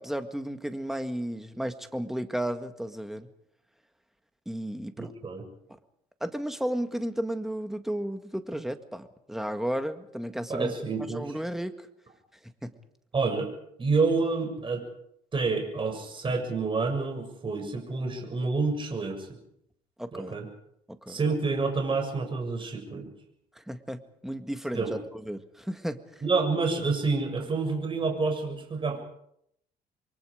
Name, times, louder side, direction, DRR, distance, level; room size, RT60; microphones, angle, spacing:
voice 1, 0.0-3.3 4.5-5.2 6.2-10.7 11.1-11.9 12.6-12.7 20.0-20.3 20.9-21.2 23.6-26.0, right 1 dB, ahead, 8 dB, 1.9 m, -33 dB
voice 2, 5.0-5.4 10.5-11.3 13.1-13.5 13.8-14.8 15.3-19.4 20.1-20.5 21.1-23.1 24.7-24.9 26.2-29.0, right 4 dB, 30° right, 4 dB, 7.1 m, -28 dB
28.0 x 23.5 x 5.1 m, 0.74 s
cardioid pair, 110°, 17 cm